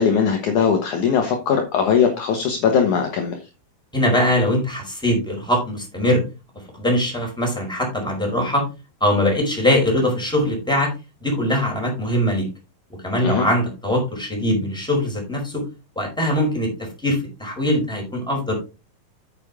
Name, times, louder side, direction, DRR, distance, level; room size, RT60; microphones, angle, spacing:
voice 1, 0.0-3.4 13.2-13.5, left 6 dB, 65° left, 3 dB, 2.4 m, -20 dB
voice 2, 3.9-6.2 6.8-8.6 9.0-10.9 11.2-12.5 13.0-15.6 15.9-18.5, equal, ahead, 0 dB, 4.5 m, -21 dB
8.9 x 8.7 x 3.6 m, 0.29 s
omnidirectional pair, 4.3 m